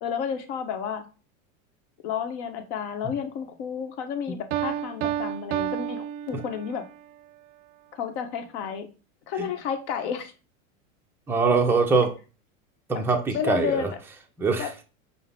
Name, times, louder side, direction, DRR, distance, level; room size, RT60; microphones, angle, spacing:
voice 1, 0.0-1.0 2.0-6.8 7.9-8.9 9.3-10.3 12.9-13.0 13.3-14.0 14.6-14.7, left 7 dB, 55° left, 7 dB, 0.9 m, -31 dB
Piano, 4.5-7.0, right 11 dB, 70° right, 0.5 m, -30 dB
voice 2, 11.3-12.1 12.9-13.9 14.4-14.7, right 4 dB, 5° right, 2 dB, 0.4 m, -22 dB
5.5 x 2.0 x 3.4 m, 0.33 s
hypercardioid pair, 115°, 40 cm